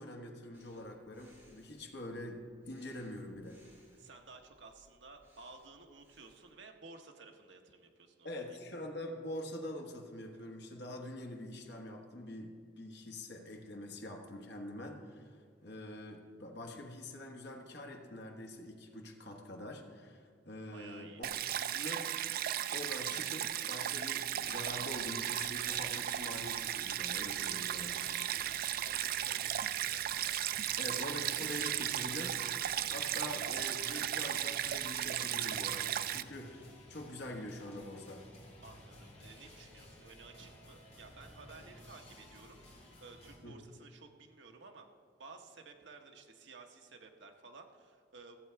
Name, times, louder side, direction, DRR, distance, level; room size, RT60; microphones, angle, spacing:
voice 1, 0.0-3.6 8.2-15.2 15.6-21.3 21.7-22.1 22.7-28.0 30.8-38.2 43.4-43.6, left 1 dB, 65° left, 1 dB, 1.4 m, -45 dB
Breathing, 0.5-6.5, equal, 10° right, 3.0 m, -67 dB
voice 2, 3.9-8.6 20.7-21.2 27.8-31.0 38.6-44.9 45.2-48.4, right 4 dB, 70° right, 3 dB, 1.1 m, -55 dB
Stream, 21.2-36.2, right 11 dB, 55° right, 0.4 m, -36 dB
sound 1, 24.4-43.4, left 1 dB, 35° left, 2.6 m, -56 dB
14.5 x 7.7 x 4.6 m, 2.1 s
head